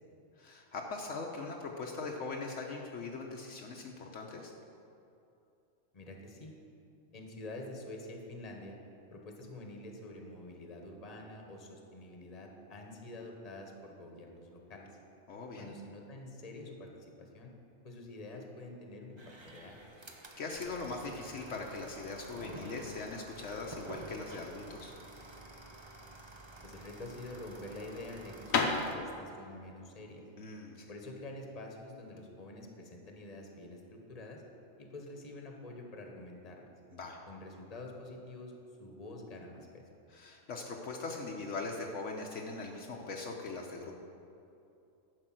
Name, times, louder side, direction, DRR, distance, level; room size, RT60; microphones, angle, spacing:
voice 1, 0.4-4.5 15.3-15.7 20.4-24.9 30.4-30.9 36.9-37.2 40.1-44.0, left 3 dB, 65° left, 1 dB, 1.1 m, -41 dB
voice 2, 5.9-6.5 7.1-8.8 9.1-14.9 15.6-17.5 17.8-19.8 26.6-30.2 30.9-34.4 34.8-36.7 37.3-38.5 38.8-39.8, left 2 dB, 30° left, 2 dB, 1.2 m, -47 dB
sound 1, 19.2-29.0, right 2 dB, 25° right, 0.7 m, -50 dB
sound 2, 28.4-32.3, left 4 dB, 85° left, 1.3 m, -36 dB
11.0 x 5.2 x 7.6 m, 2.7 s
omnidirectional pair, 1.4 m